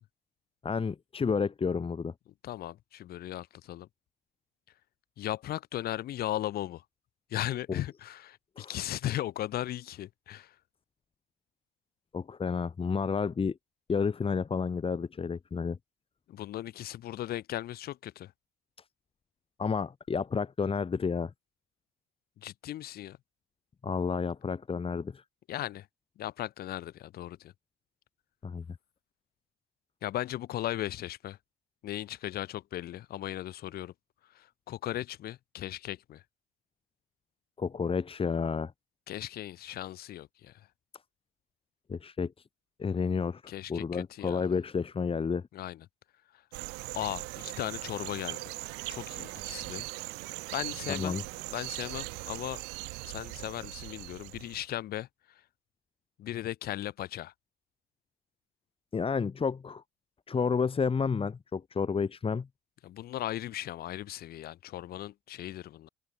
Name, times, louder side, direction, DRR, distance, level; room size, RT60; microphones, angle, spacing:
voice 1, 0.6-2.1 7.7-7.8 8.6-8.7 12.1-13.6 13.9-15.8 19.6-21.3 23.8-25.2 28.4-28.7 37.6-38.7 41.9-42.3 42.8-45.5 50.9-51.2 58.9-59.8 60.3-62.5, left 5 dB, 30° left, 2.0 m, -30 dB
voice 2, 2.4-3.9 5.2-6.8 7.3-10.6 16.3-18.3 22.4-23.2 25.5-25.9 26.2-27.5 30.0-31.4 31.8-33.9 34.2-36.2 39.1-40.7 43.5-44.4 45.5-45.9 46.3-46.4 46.9-48.5 48.9-49.9 50.5-51.2 51.5-52.6 53.0-55.4 56.2-57.3 62.8-65.9, left 13 dB, 55° left, 6.0 m, -37 dB
sound 1, 46.5-54.7, right 28 dB, 65° right, 3.5 m, -40 dB
figure-of-eight pair, 50°, 18 cm